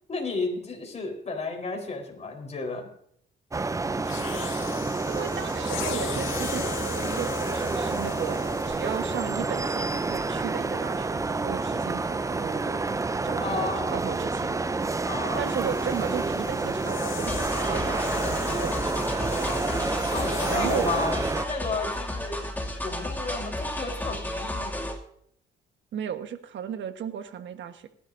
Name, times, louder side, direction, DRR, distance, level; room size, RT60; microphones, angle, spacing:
voice 1, 0.1-2.9 13.4-13.9 15.1-15.7 20.1-22.4 22.8-24.9, left 3 dB, 35° left, 2 dB, 4.3 m, -33 dB
sound 1, 3.5-21.5, right 3 dB, 15° right, 0.5 m, -29 dB
sound 2, 4.0-9.5 10.3-10.5 14.5-21.2, left 9 dB, 90° left, 1.5 m, -38 dB
voice 2, 5.1-12.8 13.2-14.6 15.3-17.4 17.7-18.8 20.5-20.9 25.9-27.9, right 9 dB, 70° right, 8 dB, 1.4 m, -35 dB
sound 3, 17.3-25.0, left 1 dB, 10° left, 2.5 m, -33 dB
19.5 x 11.5 x 2.7 m, 0.67 s
cardioid pair, 90°, 20 cm